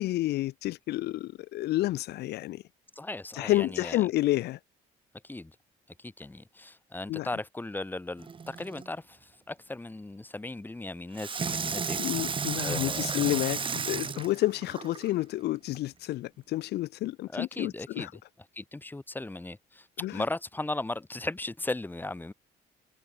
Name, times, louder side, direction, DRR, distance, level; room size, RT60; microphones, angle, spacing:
voice 1, 0.0-2.6 3.3-4.6 7.1-7.3 12.0-18.1 20.0-20.2, left 16 dB, 75° left, 1.2 m, -30 dB
voice 2, 2.9-4.0 5.2-5.5 6.0-12.0 12.6-13.3 17.3-18.1 18.5-22.3, left 2 dB, 10° left, 3.1 m, -37 dB
Water tap faucet / Sink (filling or washing), 8.2-8.9 11.2-15.1 15.8-15.9, right 5 dB, 30° right, 2.8 m, -33 dB
cardioid pair, 110°, 17 cm